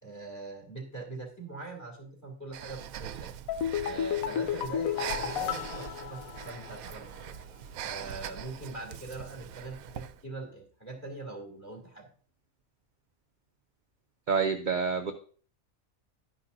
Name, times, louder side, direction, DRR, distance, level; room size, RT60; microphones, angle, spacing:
voice 1, 0.0-3.3 3.8-7.2 7.8-12.1, right 3 dB, 10° left, -1 dB, 2.8 m, -42 dB
Breathing, 2.5-10.2, right 10 dB, 80° right, 1.0 m, -42 dB
sound 1, 3.5-6.9 7.2-7.3, left 9 dB, 75° left, 1.1 m, -32 dB
voice 2, 14.3-15.1, right 5 dB, 50° right, 5 dB, 0.6 m, -27 dB
11.0 x 9.7 x 2.6 m, 0.43 s
omnidirectional pair, 1.5 m